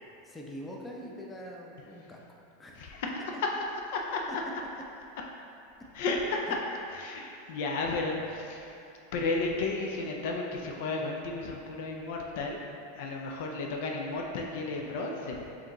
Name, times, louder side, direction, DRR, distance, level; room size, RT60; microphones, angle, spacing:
voice 1, 0.2-2.2 2.6-2.8 6.5-6.6, equal, 15° left, -1 dB, 0.5 m, -43 dB
voice 2, 2.7-3.2 3.9-4.2 5.9-6.4 6.9-8.8 9.1-12.6 12.9-15.4, left 3 dB, 65° left, 0 dB, 0.4 m, -33 dB
4.8 x 2.6 x 3.0 m, 2.8 s
hypercardioid pair, 100°, 0 cm